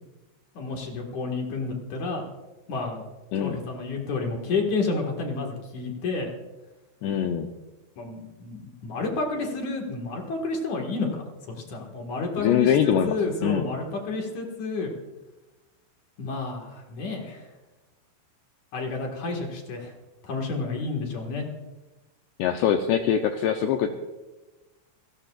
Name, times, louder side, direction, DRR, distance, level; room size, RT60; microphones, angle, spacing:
voice 1, 0.5-2.2 2.7-3.0 3.4-6.3 8.0-14.9 16.2-17.4 18.7-19.9 20.2-21.5, left 3 dB, 55° left, 1 dB, 2.2 m, -30 dB
voice 2, 7.0-7.5 12.4-13.2 13.4-13.7 22.4-23.9, left 9 dB, 85° left, 5 dB, 2.4 m, -23 dB
27.5 x 17.0 x 2.5 m, 1.1 s
omnidirectional pair, 5.8 m